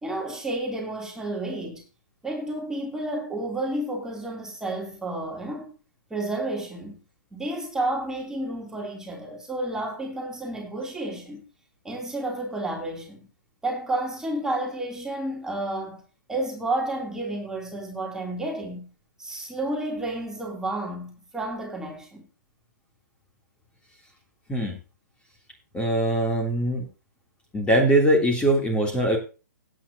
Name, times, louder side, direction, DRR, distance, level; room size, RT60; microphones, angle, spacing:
voice 1, 0.0-1.8 2.2-5.8 6.1-7.0 7.3-11.4 11.8-13.3 13.6-16.0 16.3-18.9 19.2-22.2, right 1 dB, 5° right, 3.2 m, -31 dB
voice 2, 25.7-26.9 27.5-29.2, right 1 dB, 10° left, 3.3 m, -22 dB
16.5 x 9.3 x 2.9 m
figure-of-eight pair, 125°, 10 cm